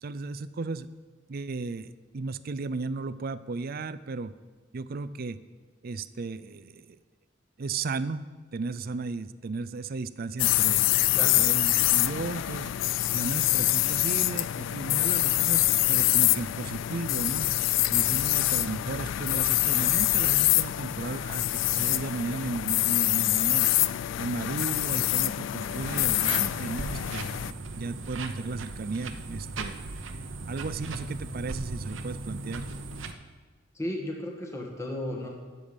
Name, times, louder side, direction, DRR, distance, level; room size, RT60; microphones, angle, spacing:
voice 1, 0.0-0.9 1.3-4.3 4.7-5.4 5.8-7.0 7.6-10.9 11.4-12.7 13.1-17.5 17.9-23.9 24.2-29.8 30.5-32.7, right 3 dB, 50° right, 14 dB, 0.4 m, -35 dB
sound 1, 10.4-27.5, left 15 dB, 70° left, 0.3 m, -25 dB
sound 2, 25.7-33.1, right 3 dB, 80° right, 0.9 m, -38 dB
voice 2, 33.7-35.3, left 1 dB, 15° left, 0 dB, 1.5 m, -34 dB
18.0 x 6.9 x 5.2 m, 1.4 s
head